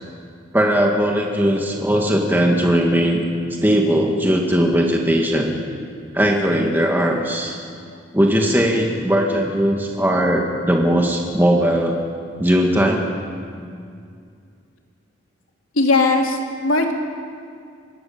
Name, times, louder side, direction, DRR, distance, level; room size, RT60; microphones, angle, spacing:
voice 1, 0.5-3.2 3.6-5.6 6.1-7.6 8.1-12.0 12.4-13.0, equal, 10° right, 0 dB, 1.8 m, -18 dB
voice 2, 15.8-16.9, left 3 dB, 90° left, 1 dB, 3.2 m, -18 dB
25.0 x 19.0 x 7.2 m, 2.3 s
head